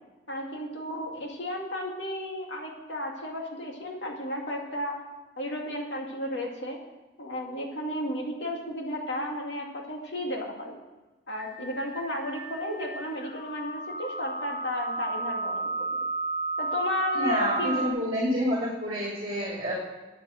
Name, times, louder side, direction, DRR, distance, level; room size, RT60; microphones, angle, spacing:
voice 1, 0.3-4.9 5.4-6.8 7.2-10.8 11.3-16.0 16.6-17.8, left 1 dB, 75° left, 0 dB, 2.3 m, -33 dB
sound 1, 11.4-17.9, right 3 dB, 45° left, 1.1 m, -33 dB
voice 2, 17.1-19.7, equal, 30° right, -4 dB, 2.6 m, -28 dB
9.4 x 8.9 x 7.7 m, 1.2 s
head